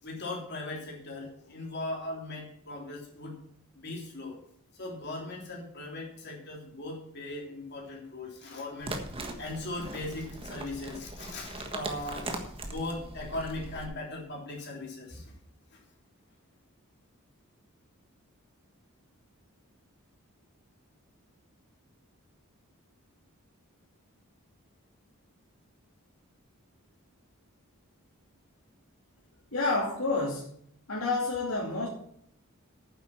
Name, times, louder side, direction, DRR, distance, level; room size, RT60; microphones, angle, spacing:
voice 1, 0.0-3.3 3.7-4.4 4.7-8.9 9.4-15.3, left 2 dB, 50° left, -2 dB, 3.4 m, -39 dB
sound 1, 8.8-13.9, right 2 dB, 25° right, 1.5 m, -40 dB
voice 2, 29.5-30.5 30.9-31.9, left 3 dB, 80° left, -5 dB, 2.8 m, -29 dB
9.5 x 7.9 x 7.5 m, 0.67 s
head